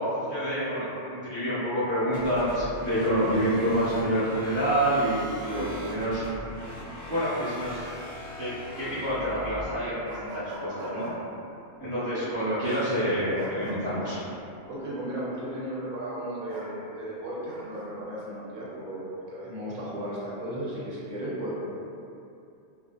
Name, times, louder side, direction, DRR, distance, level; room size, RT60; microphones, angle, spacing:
voice 1, 0.0-6.2 7.1-7.9 8.4-11.1 11.8-14.2, equal, 5° right, -15 dB, 1.1 m, -27 dB
sound 1, 2.1-9.7, equal, 25° right, 0.4 m, -41 dB
sound 2, 10.0-11.1 13.3-13.8 16.5-16.7 17.5-17.9, right 1 dB, 85° right, 0.9 m, -41 dB
voice 2, 12.0-12.8 14.7-21.6, right 1 dB, 50° right, -8 dB, 0.8 m, -35 dB
2.5 x 2.2 x 2.3 m, 2.7 s
omnidirectional pair, 1.1 m